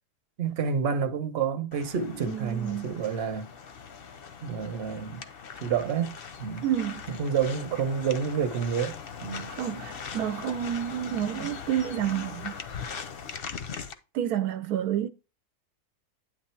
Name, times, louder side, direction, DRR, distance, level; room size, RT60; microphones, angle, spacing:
voice 1, 0.4-3.5 4.4-5.3 5.6-6.7 7.1-9.5, right 7 dB, 45° right, 1.0 m, -29 dB
sound 1, 1.7-13.9, left 6 dB, 50° left, 0.7 m, -40 dB
voice 2, 2.3-3.0 6.6-7.0 9.5-12.6 14.1-15.1, right 10 dB, 80° right, 1.1 m, -29 dB
9.4 x 3.3 x 4.4 m
omnidirectional pair, 1.6 m